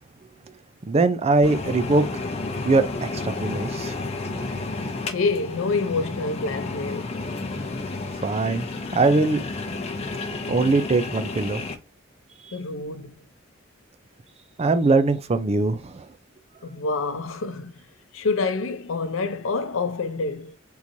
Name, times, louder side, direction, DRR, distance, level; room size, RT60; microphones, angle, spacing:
voice 1, 0.9-2.2 2.6-4.0 4.6-4.7 8.2-8.7 8.9-9.4 10.5-11.6 14.6-16.0, right 3 dB, 30° right, 0.4 m, -21 dB
sound 1, 1.4-11.7, left 3 dB, 30° left, 0.6 m, -31 dB
voice 2, 5.1-7.2 12.5-13.3 16.6-17.8 18.1-20.6, left 3 dB, 85° left, 0.6 m, -27 dB
3.7 x 3.0 x 2.6 m
head